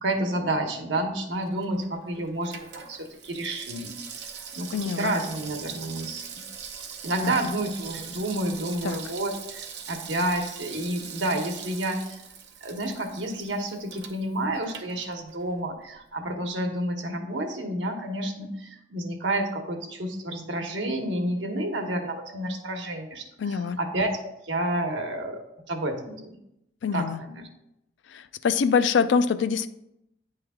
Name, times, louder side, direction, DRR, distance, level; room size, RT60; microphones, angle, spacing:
voice 1, 0.0-3.9 4.4-6.4 7.0-12.2 12.6-24.2 24.5-25.4 25.7-26.4 26.9-27.4, right 1 dB, 85° right, 3 dB, 1.0 m, -30 dB
Water tap faucet / Sink (filling or washing), 1.3-15.6 15.9-16.0, right 7 dB, 65° right, 0.7 m, -42 dB
voice 2, 4.7-5.1 7.2-7.5 8.8-9.0 23.4-23.8 26.8-27.2 28.1-29.7, left 6 dB, 80° left, 12 dB, 0.4 m, -25 dB
9.4 x 3.2 x 3.6 m, 0.81 s
head